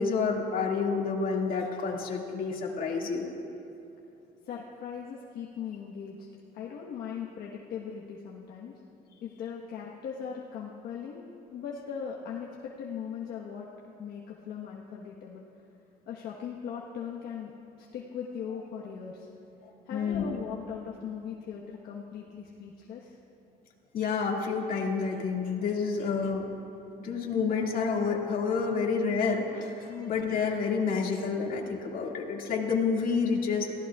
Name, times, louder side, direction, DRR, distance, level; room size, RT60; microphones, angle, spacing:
voice 1, 0.0-3.3 19.6-20.2 23.9-26.4 27.0-33.7, left 5 dB, 55° left, 0 dB, 2.2 m, -29 dB
voice 2, 4.4-6.3 6.5-8.9 9.2-13.7 14.0-15.5 16.1-17.5 17.8-19.3 19.9-23.2 26.2-26.3 29.9-30.1, left 7 dB, 70° left, -3 dB, 1.3 m, -39 dB
25.0 x 16.0 x 2.4 m, 2.9 s
cardioid pair, 110°, 17 cm